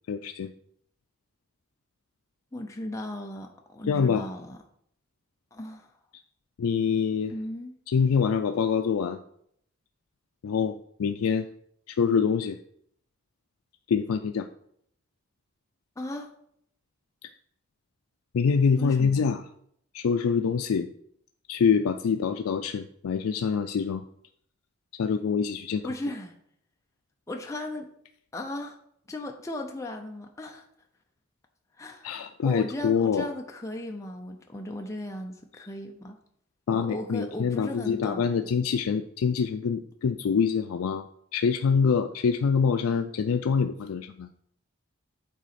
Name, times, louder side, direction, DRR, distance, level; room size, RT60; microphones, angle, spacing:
voice 1, 0.1-0.5 3.9-4.3 6.6-7.3 7.9-9.2 10.4-11.5 11.9-12.6 13.9-14.5 18.3-19.4 19.9-20.9 21.5-24.0 25.0-25.8 32.0-33.3 36.7-41.0 41.3-44.3, left 6 dB, 90° left, 7 dB, 0.4 m, -25 dB
voice 2, 2.5-4.6 5.5-5.9 7.3-7.7 16.0-16.3 18.8-19.3 25.8-26.3 27.3-27.9 28.3-28.8 29.1-30.6 31.8-36.2 36.7-38.5, left 1 dB, 15° left, 2 dB, 0.5 m, -36 dB
9.1 x 4.0 x 4.2 m, 0.69 s
head